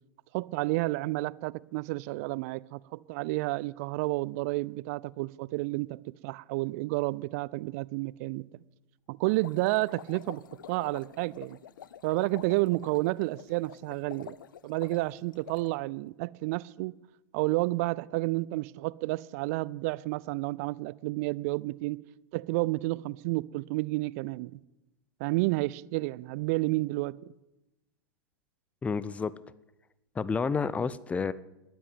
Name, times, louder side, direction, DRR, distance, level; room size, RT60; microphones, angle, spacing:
voice 1, 0.3-8.5 9.1-10.4 10.7-11.6 12.0-14.4 14.6-16.9 17.3-22.0 22.3-24.6 25.2-27.2, right 21 dB, 40° right, 0.5 m, -30 dB
sound 1, 9.2-15.7, left 9 dB, 65° left, 0.6 m, -48 dB
voice 2, 28.8-29.3 30.2-31.3, left 5 dB, 10° left, 0.6 m, -29 dB
11.0 x 10.0 x 9.4 m
figure-of-eight pair, 95°, 12 cm